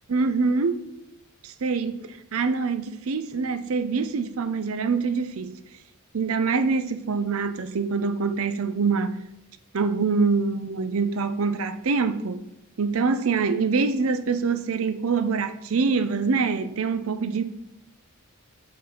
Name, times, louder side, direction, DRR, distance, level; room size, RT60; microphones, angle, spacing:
voice 1, 0.1-0.8 1.4-5.6 6.1-9.2 9.7-12.4 12.8-17.4, right 4 dB, 70° right, 0.5 m, -25 dB
5.8 x 5.4 x 5.5 m
head